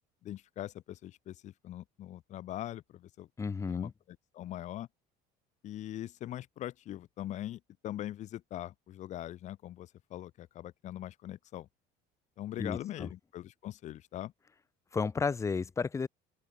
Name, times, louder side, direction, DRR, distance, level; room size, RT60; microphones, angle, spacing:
voice 1, 0.2-3.3 3.7-4.9 5.6-11.7 12.4-14.3, left 13 dB, 40° left, 7.0 m, -42 dB
voice 2, 3.4-3.9 12.6-13.1 14.9-16.1, left 5 dB, 15° left, 5.7 m, -32 dB
open air
cardioid pair, 175°, 18 cm